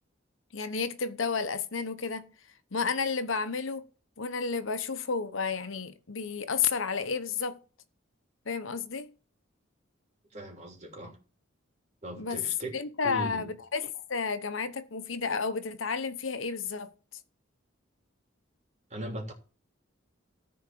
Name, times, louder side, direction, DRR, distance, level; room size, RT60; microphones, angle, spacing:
voice 1, 0.5-2.3 2.7-3.9 4.2-7.6 8.5-9.1 12.2-12.4 12.7-16.9, left 5 dB, 75° left, 1.0 m, -31 dB
voice 2, 10.3-11.1 12.0-12.7 13.0-13.5 18.9-19.3, right 1 dB, 35° right, 3.2 m, -38 dB
14.5 x 4.8 x 6.8 m
head